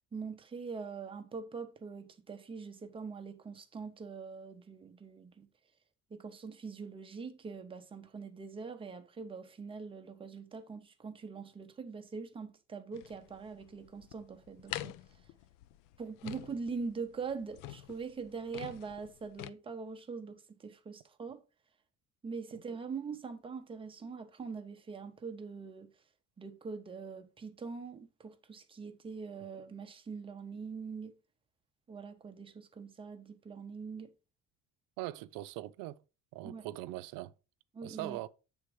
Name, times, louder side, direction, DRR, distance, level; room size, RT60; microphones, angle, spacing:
voice 1, 0.1-5.5 6.1-15.2 16.0-21.4 22.2-25.9 26.4-31.2 31.9-34.1 36.4-36.7 37.7-38.2, right 5 dB, 15° right, 0.6 m, -43 dB
sound 1, 12.9-19.5, left 14 dB, 80° left, 0.5 m, -47 dB
voice 2, 35.0-36.0 36.3-37.3 37.8-38.3, right 16 dB, 90° right, 0.5 m, -41 dB
8.1 x 3.5 x 4.6 m
cardioid pair, 165°, 32 cm